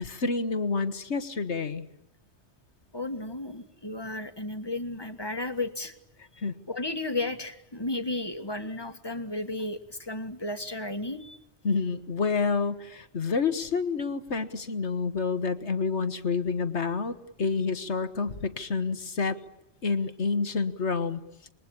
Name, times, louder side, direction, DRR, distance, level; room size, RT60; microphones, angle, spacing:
voice 1, 0.0-1.9 6.4-6.5 11.6-19.4 19.8-21.2, left 4 dB, 75° left, 10 dB, 1.9 m, -28 dB
voice 2, 2.9-5.9 6.7-11.4, left 2 dB, 20° left, 9 dB, 1.7 m, -33 dB
27.0 x 22.0 x 8.8 m, 0.81 s
omnidirectional pair, 1.2 m